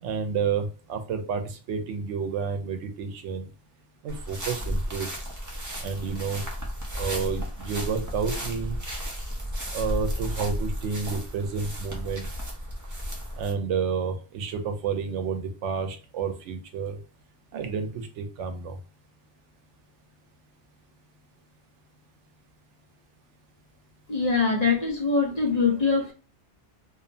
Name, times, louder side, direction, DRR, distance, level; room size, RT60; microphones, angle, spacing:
voice 1, 0.0-3.5 4.0-5.1 5.8-6.4 7.0-8.8 9.7-12.3 13.4-17.0 17.5-18.8, right 5 dB, 90° right, 0.9 m, -30 dB
sound 1, 4.1-13.5, equal, 25° right, 0.4 m, -33 dB
voice 2, 24.1-26.1, left 4 dB, 40° left, 0.7 m, -23 dB
2.7 x 2.0 x 2.6 m
omnidirectional pair, 1.2 m